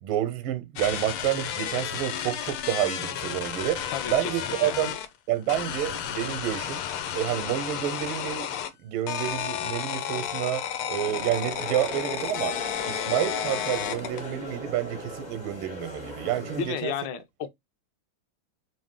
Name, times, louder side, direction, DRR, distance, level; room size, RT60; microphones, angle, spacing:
voice 1, 0.0-5.0 5.3-6.8 7.1-8.5 8.8-12.5 12.9-16.9, right 12 dB, 85° right, 1.5 m, -29 dB
sound 1, 0.8-5.1 5.5-8.7 9.1-14.3, left 9 dB, 85° left, 1.5 m, -32 dB
voice 2, 3.9-4.8 16.5-17.5, left 8 dB, 70° left, 1.2 m, -33 dB
sound 2, 11.0-16.7, equal, 30° left, 0.8 m, -38 dB
3.5 x 2.6 x 3.6 m
omnidirectional pair, 2.4 m